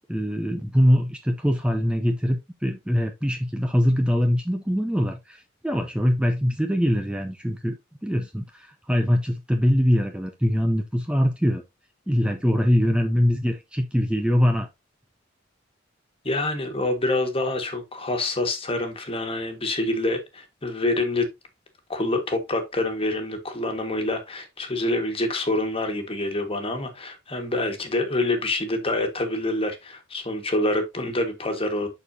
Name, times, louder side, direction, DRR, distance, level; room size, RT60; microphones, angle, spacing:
voice 1, 0.1-7.8 8.0-11.6 12.1-14.7, equal, 5° right, 0.5 m, -23 dB
voice 2, 16.2-21.3 21.9-31.9, left 2 dB, 30° left, 1.6 m, -26 dB
11.5 x 4.3 x 2.7 m
head